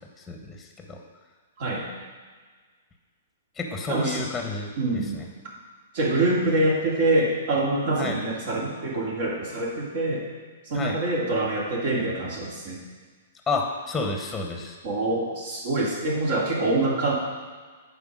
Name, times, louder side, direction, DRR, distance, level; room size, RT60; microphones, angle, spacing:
voice 1, 0.3-1.0 3.6-5.3 8.0-8.2 10.7-11.0 13.5-14.7, left 3 dB, 10° left, 3 dB, 1.1 m, -30 dB
voice 2, 1.6-1.9 3.9-4.2 4.8-5.2 5.9-10.3 10.6-12.8 14.8-17.1, right 2 dB, 50° right, -3 dB, 2.4 m, -25 dB
11.0 x 4.8 x 5.0 m, 1.5 s
figure-of-eight pair, 110°, 0 cm